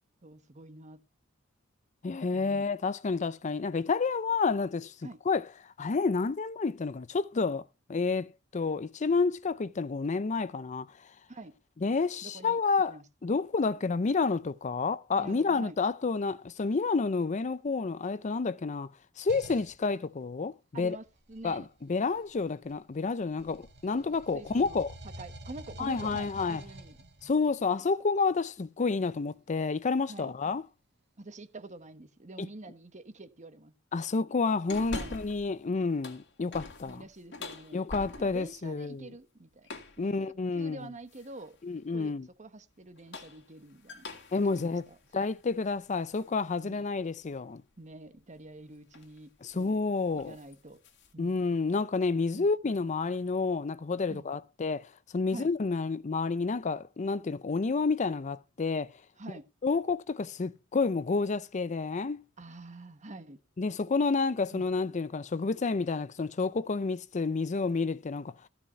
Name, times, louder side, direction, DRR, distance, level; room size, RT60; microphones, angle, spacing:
voice 1, 0.2-1.0 2.3-2.7 5.0-5.2 11.3-11.5 12.2-12.6 12.9-13.0 15.2-15.8 20.7-21.7 24.0-24.8 25.2-27.1 30.1-30.3 31.2-33.7 34.9-35.2 36.9-37.8 38.2-39.7 40.0-40.1 40.5-41.6 41.9-42.1 42.4-44.1 44.5-45.0 46.6-46.9 47.8-49.8 50.1-50.8 51.1-51.4 52.3-52.5 54.1-54.3 55.3-55.5 59.2-59.4 62.4-63.4 64.5-64.7, right 2 dB, 35° right, 1.1 m, -47 dB
voice 2, 2.0-4.9 5.3-10.9 11.8-18.9 19.2-21.0 21.4-24.9 25.8-26.6 27.2-30.6 32.4-32.5 33.9-37.0 37.7-39.1 40.0-40.8 41.6-42.3 44.3-44.8 45.1-47.6 49.4-50.4 51.2-58.9 59.6-62.2 63.6-68.3, left 4 dB, 35° left, 0.5 m, -30 dB
sound 1, 19.3-19.8 21.1-23.0 23.4-27.5, right 1 dB, 55° right, 2.1 m, -48 dB
sound 2, 34.7-35.5 35.9-38.6 39.6-40.1 41.1-41.5 42.8-46.3 46.7-46.8 48.4-48.6 48.9-49.2 49.5-49.7 50.1-51.1, left 3 dB, 60° left, 2.2 m, -44 dB
15.0 x 5.8 x 5.5 m
head